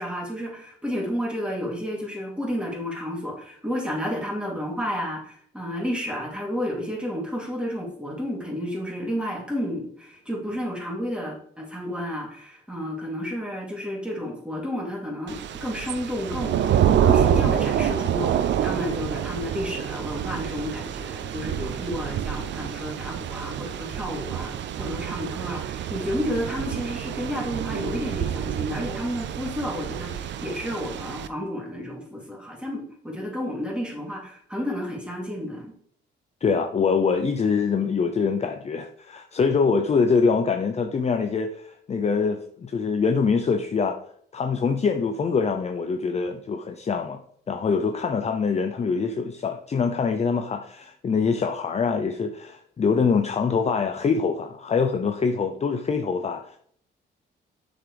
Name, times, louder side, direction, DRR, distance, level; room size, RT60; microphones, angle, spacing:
voice 1, 0.0-35.7, equal, 5° right, -3 dB, 3.2 m, -31 dB
Thunder / Rain, 15.3-31.3, right 9 dB, 65° right, 0.6 m, -27 dB
voice 2, 36.4-44.0 44.3-47.2 47.5-56.6, left 5 dB, 35° left, 6 dB, 0.7 m, -24 dB
7.8 x 6.2 x 3.4 m, 0.63 s
cardioid pair, 90°, 20 cm